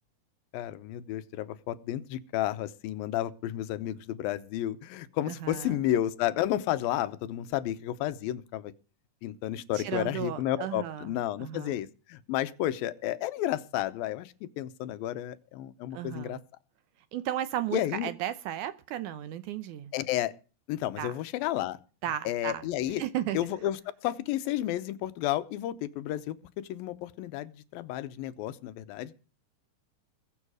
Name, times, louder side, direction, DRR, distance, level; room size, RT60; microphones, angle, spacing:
voice 1, 0.5-8.7 9.2-16.4 17.7-18.1 19.9-20.3 20.7-21.8 22.3-23.0 23.3-29.1, left 13 dB, 90° left, 2.7 m, -32 dB
voice 2, 5.3-5.7 9.7-11.1 11.4-11.7 15.9-16.4 17.1-19.9 21.0-21.1 22.0-22.6 23.0-23.4, right 12 dB, 75° right, 2.0 m, -34 dB
21.5 x 7.3 x 4.9 m
omnidirectional pair, 4.0 m